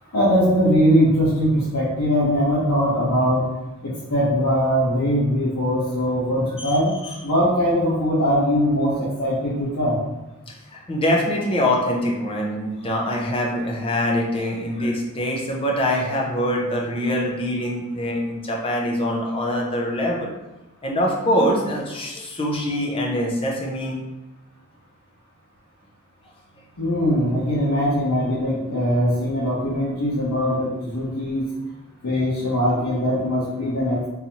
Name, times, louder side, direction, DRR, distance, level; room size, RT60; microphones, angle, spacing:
voice 1, 0.1-3.4 3.8-6.9 7.2-10.0 26.8-31.4 32.0-34.0, equal, 80° left, -8 dB, 1.0 m, -21 dB
voice 2, 10.5-20.3 20.8-24.0 27.1-27.2, equal, 25° left, -1 dB, 0.6 m, -24 dB
3.8 x 2.8 x 2.9 m, 1.0 s
head